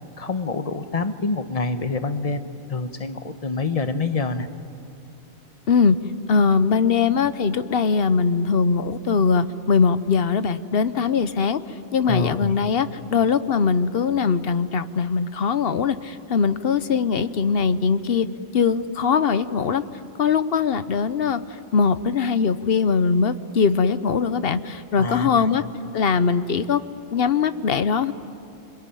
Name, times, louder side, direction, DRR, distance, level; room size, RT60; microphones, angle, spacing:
voice 1, 0.2-2.4 2.7-4.5 12.1-12.5 25.0-25.5, left 3 dB, 35° left, 9 dB, 1.0 m, -26 dB
voice 2, 6.3-11.6 11.9-18.3 18.5-19.8 20.2-25.6 25.9-26.8 27.1-28.1, left 5 dB, 60° left, 13 dB, 0.9 m, -21 dB
26.0 x 22.5 x 9.9 m, 2.8 s
omnidirectional pair, 1.2 m